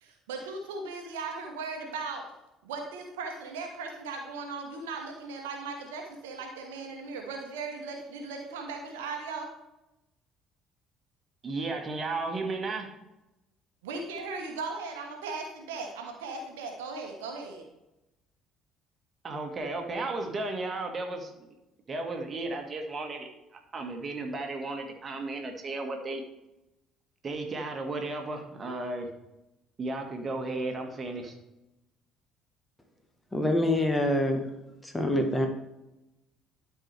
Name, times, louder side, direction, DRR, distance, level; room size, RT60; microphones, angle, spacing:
voice 1, 0.0-2.2 2.6-9.5 13.8-17.7, right 4 dB, 75° right, 3 dB, 1.1 m, -38 dB
voice 2, 11.4-12.9 19.2-21.3 21.9-26.2 27.2-29.1 29.8-31.4, right 2 dB, 35° right, 3 dB, 1.7 m, -34 dB
voice 3, 33.3-34.5 34.8-35.5, left 1 dB, 15° left, 5 dB, 1.3 m, -25 dB
11.5 x 4.7 x 3.4 m, 0.93 s
figure-of-eight pair, 50°, 0 cm